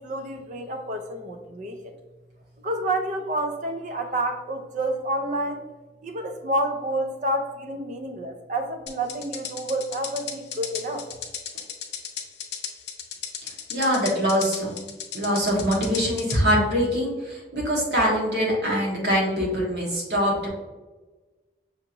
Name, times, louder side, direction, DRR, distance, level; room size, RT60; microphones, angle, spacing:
voice 1, 0.0-1.9 2.6-5.6 6.0-11.0, right 1 dB, 45° right, 5 dB, 0.5 m, -29 dB
sound 1, 8.9-16.4, left 8 dB, 75° left, 0.6 m, -35 dB
voice 2, 13.4-14.7 15.1-20.5, equal, 75° right, -3 dB, 1.3 m, -23 dB
5.7 x 2.9 x 2.5 m, 1.2 s
head